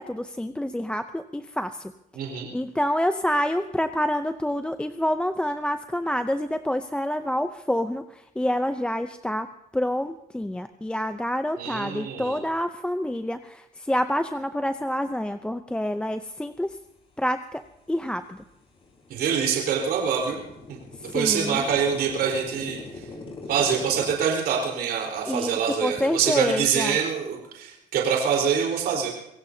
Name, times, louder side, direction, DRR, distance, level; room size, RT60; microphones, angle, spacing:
voice 1, 0.0-1.9 2.2-16.8 17.2-17.6 17.9-18.4 21.0-21.7 25.3-27.0, equal, 5° left, 9 dB, 0.6 m, -27 dB
voice 2, 2.2-2.5 11.6-12.4 19.1-20.4 21.1-22.8 23.5-29.1, right 7 dB, 70° right, 0 dB, 4.3 m, -25 dB
sound 1, 17.6-17.7 18.2-24.1, left 2 dB, 35° left, 4.6 m, -42 dB
25.5 x 17.0 x 2.8 m, 0.86 s
cardioid pair, 110°, 17 cm